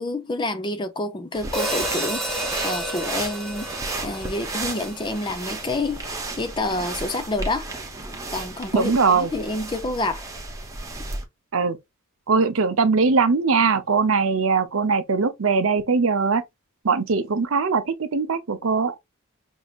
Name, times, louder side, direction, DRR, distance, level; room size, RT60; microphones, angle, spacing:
voice 1, 0.0-7.7 8.3-10.3, left 2 dB, 20° left, 0.5 m, -28 dB
sound 1, 1.3-11.2, right 2 dB, 15° right, 0.8 m, -33 dB
Hi-hat, 1.5-5.8, right 1 dB, ahead, 1.3 m, -31 dB
voice 2, 8.7-9.3 11.5-11.8 12.3-16.4 16.8-19.0, right 4 dB, 70° right, 0.6 m, -21 dB
5.3 x 2.8 x 2.4 m
head